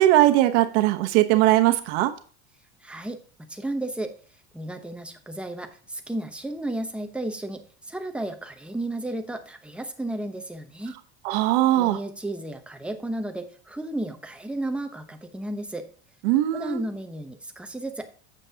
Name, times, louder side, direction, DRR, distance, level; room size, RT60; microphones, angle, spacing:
voice 1, 0.0-2.1 11.2-12.0 16.2-16.8, right 15 dB, 75° right, 8 dB, 1.0 m, -20 dB
voice 2, 2.8-3.2 3.5-4.1 4.5-11.0 11.8-15.9 16.5-18.1, right 1 dB, 5° right, 5 dB, 0.8 m, -33 dB
9.0 x 7.5 x 2.8 m, 0.41 s
supercardioid pair, 135°, 35 cm